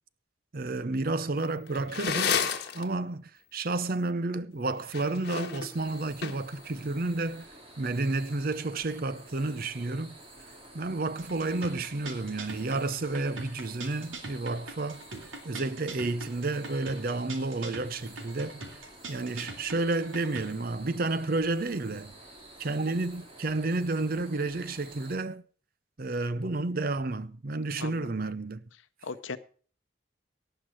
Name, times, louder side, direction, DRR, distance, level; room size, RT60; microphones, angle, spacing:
voice 1, 0.5-2.4 2.7-7.5 7.8-10.2 10.7-15.0 15.4-18.6 19.1-22.1 22.6-25.4 26.0-28.6, right 2 dB, 45° right, 0.6 m, -31 dB
sound 1, 1.4-2.8 4.8-6.6, left 6 dB, 55° left, 1.5 m, -30 dB
sound 2, 5.7-25.2, right 1 dB, 30° right, 2.5 m, -51 dB
sound 3, 11.2-20.5, right 3 dB, 85° right, 2.9 m, -43 dB
voice 2, 27.8-28.1 29.0-29.4, left 4 dB, 75° left, 0.7 m, -38 dB
18.0 x 6.0 x 6.3 m
head